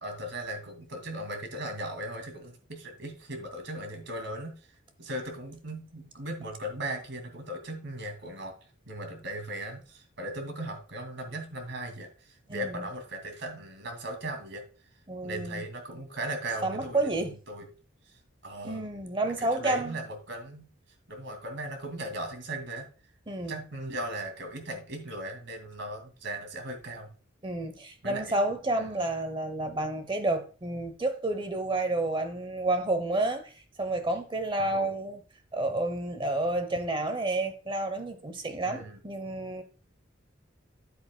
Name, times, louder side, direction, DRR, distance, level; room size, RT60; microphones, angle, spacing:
voice 1, 0.0-4.5 5.0-8.5 8.9-12.1 12.5-14.6 15.2-17.0 17.5-17.6 18.4-18.8 19.4-20.7 21.1-22.9 23.5-27.1 28.0-28.4 28.8-28.9 34.6-34.9 38.6-39.0, right 1 dB, 60° right, 2.4 m, -37 dB
voice 2, 12.5-12.8 15.1-15.6 16.6-17.3 18.6-20.0 23.3-23.6 27.4-35.2 35.5-39.6, right 2 dB, 25° right, 0.8 m, -30 dB
9.6 x 8.6 x 2.2 m
head